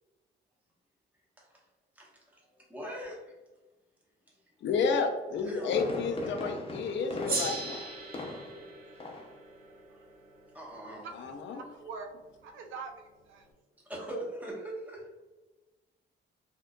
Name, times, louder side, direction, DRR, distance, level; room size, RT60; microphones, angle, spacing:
voice 1, 1.4-1.7 1.9-3.4 4.3-4.4 5.4-5.8 9.9-10.0 10.5-11.1 13.8-15.1, right 1 dB, 10° right, -4 dB, 1.1 m, -41 dB
voice 2, 4.6-7.9 11.2-11.6, left 5 dB, 65° left, 5 dB, 0.6 m, -31 dB
Fireworks, 5.2-8.7 9.0-9.4 9.7-9.8, left 2 dB, 30° left, 0.6 m, -40 dB
Gong, 7.2-12.0, right 3 dB, 45° right, 1.0 m, -39 dB
voice 3, 11.2-12.1 12.4-13.5, right 5 dB, 80° right, 4 dB, 0.5 m, -44 dB
3.7 x 2.7 x 2.2 m, 1.1 s
cardioid pair, 90°, 20 cm